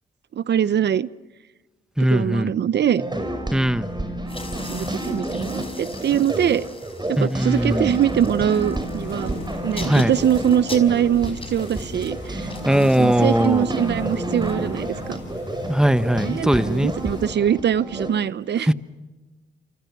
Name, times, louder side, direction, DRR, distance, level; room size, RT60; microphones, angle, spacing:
voice 1, 0.3-1.1 2.1-3.0 4.6-6.6 7.1-9.3 9.6-15.2 16.2-18.7, right 9 dB, 65° right, 17 dB, 0.7 m, -23 dB
voice 2, 2.0-2.5 3.5-3.9 7.2-7.9 9.8-10.1 12.6-13.7 15.7-16.9 18.7-18.8, equal, 5° right, 13 dB, 1.2 m, -19 dB
sound 1, 3.0-18.1, right 1 dB, 25° right, 5.9 m, -30 dB
sound 2, 4.2-15.2, left 3 dB, 30° left, 5.1 m, -42 dB
sound 3, 9.0-17.3, left 4 dB, 80° left, 7.7 m, -41 dB
28.5 x 25.5 x 6.0 m, 1.2 s
cardioid pair, 60°, 19 cm